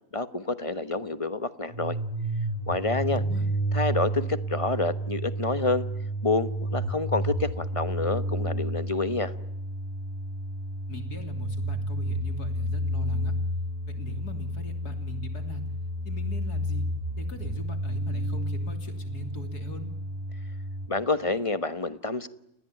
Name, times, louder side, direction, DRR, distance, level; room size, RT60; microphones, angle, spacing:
voice 1, 0.1-1.9 2.7-3.2 3.7-5.9 6.2-9.3 20.9-22.3, left 3 dB, 25° left, 13 dB, 0.9 m, -28 dB
sound 1, 1.7-20.9, right 1 dB, 25° right, 5.7 m, -31 dB
voice 2, 3.1-3.5 10.9-13.3 13.9-15.7 16.1-19.9, equal, 75° left, 7 dB, 3.7 m, -40 dB
30.0 x 20.0 x 9.1 m, 0.85 s
omnidirectional pair, 1.7 m